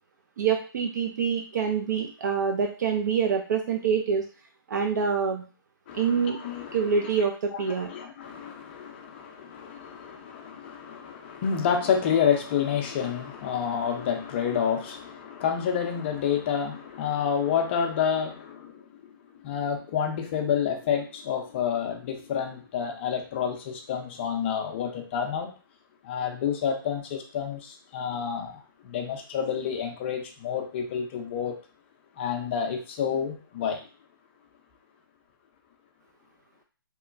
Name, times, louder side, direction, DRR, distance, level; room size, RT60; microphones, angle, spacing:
voice 1, 0.4-4.3 4.7-5.4 5.9-6.4 6.7-7.9, right 6 dB, 50° right, 3 dB, 0.3 m, -26 dB
voice 2, 5.9-7.0 7.8-19.1 19.4-25.5 26.0-31.6 32.2-33.8, left 7 dB, 30° left, 4 dB, 0.5 m, -29 dB
2.9 x 2.1 x 2.5 m, 0.37 s
hypercardioid pair, 145°, 12 cm